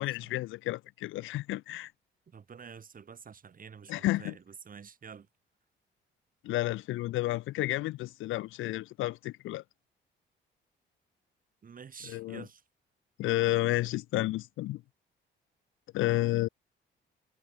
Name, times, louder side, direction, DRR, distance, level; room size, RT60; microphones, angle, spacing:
voice 1, 0.0-1.9 3.9-4.3 6.4-9.6 12.1-12.4 13.2-14.8 15.9-16.5, left 17 dB, 90° left, 0.8 m, -31 dB
voice 2, 2.3-5.3 11.6-12.6, right 6 dB, 45° right, 4.4 m, -49 dB
cardioid pair, 90°, 20 cm